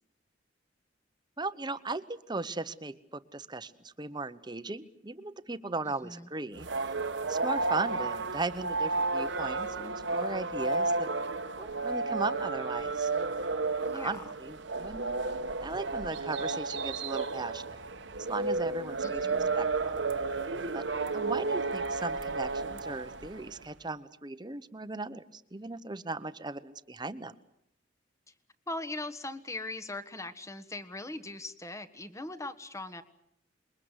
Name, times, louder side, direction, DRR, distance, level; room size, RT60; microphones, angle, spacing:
voice 1, 1.4-7.0 7.3-11.1 11.6-13.1 13.9-15.2 15.6-17.8 18.3-19.3 19.5-20.0 20.7-20.8 21.1-27.3, right 3 dB, 25° right, 12 dB, 1.0 m, -37 dB
voice 2, 5.8-6.3 13.8-14.2 19.0-19.6 28.3-28.4 28.7-33.0, left 2 dB, 15° left, 10 dB, 1.4 m, -40 dB
sound 1, 6.6-23.6, right 3 dB, 75° right, 1.4 m, -32 dB
27.5 x 22.0 x 8.1 m, 0.73 s
head